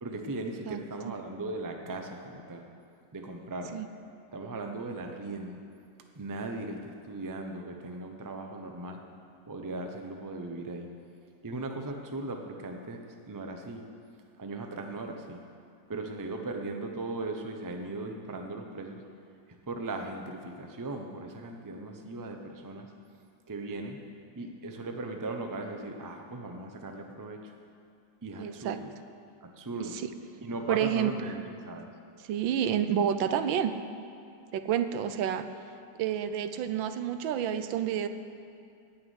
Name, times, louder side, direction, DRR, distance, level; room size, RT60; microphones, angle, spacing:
voice 1, 0.0-2.7 3.1-3.8 4.3-5.6 6.2-9.0 9.5-10.9 11.4-13.0 13.3-13.8 14.4-15.4 15.9-19.0 19.7-22.9 23.5-24.0 24.3-27.5 28.2-28.9 29.4-30.0 30.4-31.9, right 2 dB, 25° right, 4 dB, 0.4 m, -38 dB
voice 2, 28.4-28.8 29.8-30.1 30.7-31.1 32.3-33.8 34.5-35.5 36.0-38.1, right 9 dB, 85° right, 10 dB, 1.5 m, -29 dB
15.5 x 6.0 x 9.5 m, 2.4 s
omnidirectional pair, 2.0 m